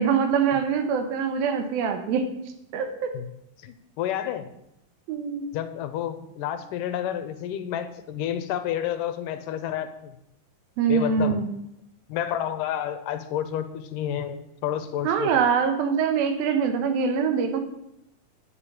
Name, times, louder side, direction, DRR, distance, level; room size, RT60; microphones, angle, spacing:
voice 1, 0.0-2.3 2.7-3.2 5.1-5.5 10.8-11.5 15.0-17.6, right 6 dB, 90° right, 7 dB, 3.0 m, -24 dB
voice 2, 3.6-4.5 5.5-10.2 10.9-11.4 12.1-15.4, left 10 dB, 75° left, 10 dB, 2.3 m, -30 dB
8.9 x 7.2 x 8.5 m, 0.81 s
omnidirectional pair, 4.1 m